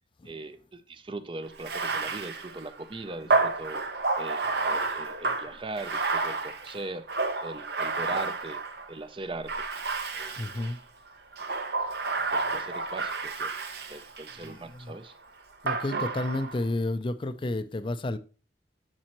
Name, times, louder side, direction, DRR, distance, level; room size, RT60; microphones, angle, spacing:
voice 1, 0.2-3.8 4.2-7.1 7.4-8.6 8.9-9.7 10.1-10.7 11.5-11.6 12.3-15.2, right 2 dB, 30° right, 0.5 m, -40 dB
Bathtub (filling or washing), 1.6-8.9 9.5-10.8 11.3-14.5 15.7-16.6, right 3 dB, 60° right, 0.9 m, -30 dB
voice 2, 10.3-10.8 14.4-14.9 15.6-18.2, left 2 dB, 30° left, 0.4 m, -31 dB
7.6 x 7.3 x 3.0 m
head